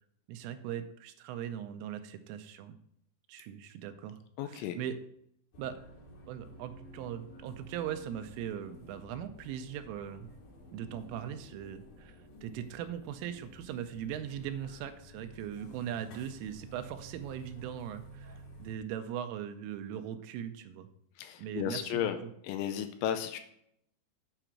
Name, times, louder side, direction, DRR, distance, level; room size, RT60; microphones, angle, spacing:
voice 1, 0.3-2.8 3.3-4.2 4.5-5.0 5.6-5.8 6.3-10.3 10.7-12.2 12.4-20.9 21.4-22.1, right 10 dB, 85° right, 9 dB, 3.2 m, -40 dB
voice 2, 4.4-4.8 21.2-22.2 22.4-23.4, left 10 dB, 80° left, 7 dB, 2.9 m, -34 dB
sound 1, 5.5-18.8, equal, 60° left, 2.7 m, -52 dB
9.0 x 5.0 x 5.9 m, 0.71 s
omnidirectional pair, 5.8 m